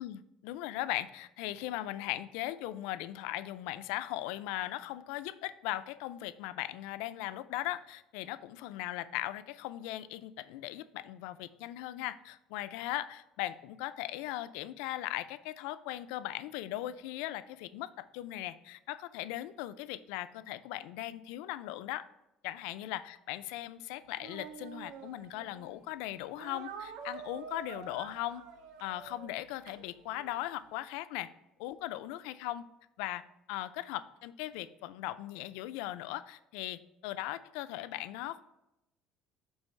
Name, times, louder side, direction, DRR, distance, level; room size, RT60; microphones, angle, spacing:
voice 1, 0.0-22.0 22.4-28.4 28.8-31.3 31.6-32.6 33.0-33.2 33.5-38.4, left 15 dB, 85° left, 13 dB, 0.3 m, -39 dB
Speech, 24.2-25.7 26.4-30.4, right 6 dB, 80° right, 0.6 m, -47 dB
6.2 x 3.2 x 5.3 m, 0.89 s
cardioid pair, 165°, 0 cm